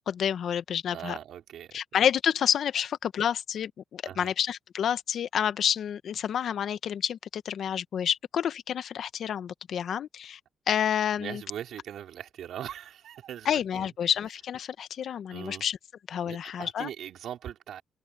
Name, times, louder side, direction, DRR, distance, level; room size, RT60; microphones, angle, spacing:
voice 1, 0.0-1.2 1.7-10.4 10.7-11.4 13.4-15.8 16.1-16.9, left 9 dB, 65° left, 1.0 m, -29 dB
voice 2, 0.9-1.8 4.0-4.3 11.2-13.9 15.3-15.6 16.2-17.8, right 10 dB, 70° right, 4.2 m, -40 dB
cardioid pair, 90°, 0 cm